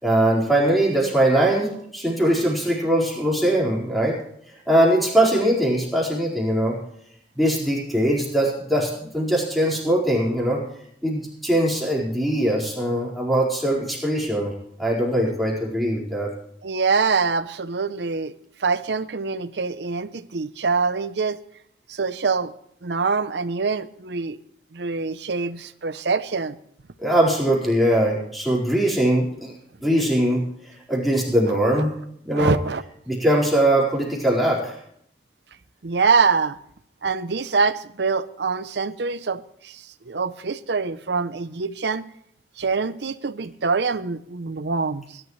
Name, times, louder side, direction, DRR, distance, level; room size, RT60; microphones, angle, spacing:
voice 1, 0.0-4.2 4.7-6.8 7.4-10.6 11.0-14.5 14.8-16.3 27.0-29.5 29.8-30.4 30.9-31.9 32.2-32.5 33.1-34.8, right 1 dB, ahead, 4.5 m, -21 dB
voice 2, 16.6-18.3 18.6-21.4 21.9-22.5 22.8-24.4 24.7-26.6 31.7-31.8 32.3-32.8 35.8-36.6 37.0-42.1 42.6-45.2, right 4 dB, 70° right, 0.7 m, -24 dB
21.5 x 11.5 x 3.2 m
head